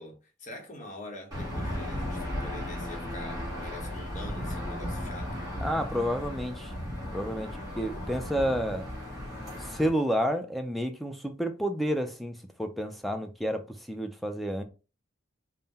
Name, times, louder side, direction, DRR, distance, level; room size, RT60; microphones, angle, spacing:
voice 1, 0.0-5.4, left 2 dB, 40° left, 1.0 m, -45 dB
Aircraft / Engine, 1.3-9.9, equal, 20° right, 1.4 m, -35 dB
voice 2, 5.6-6.7 7.1-8.9 9.6-14.6, equal, ahead, 0.4 m, -30 dB
3.7 x 2.2 x 4.0 m
head